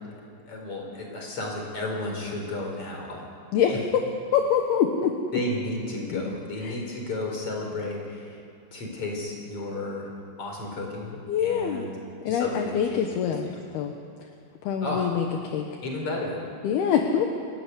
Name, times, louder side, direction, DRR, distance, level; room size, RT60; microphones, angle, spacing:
voice 1, 0.5-3.3 3.7-3.8 5.3-8.4 8.7-10.1 10.4-11.9 12.3-13.3 14.8-15.1 15.8-16.5, left 2 dB, 30° left, 1 dB, 5.1 m, -33 dB
voice 2, 3.5-4.0 4.3-5.1 6.1-6.2 6.6-6.8 11.3-11.9 12.2-13.5 13.7-13.9 14.2-14.3 14.6-15.7 16.6-17.3, left 8 dB, 70° left, 3 dB, 2.6 m, -25 dB
28.0 x 15.5 x 9.8 m, 2.7 s
omnidirectional pair, 5.8 m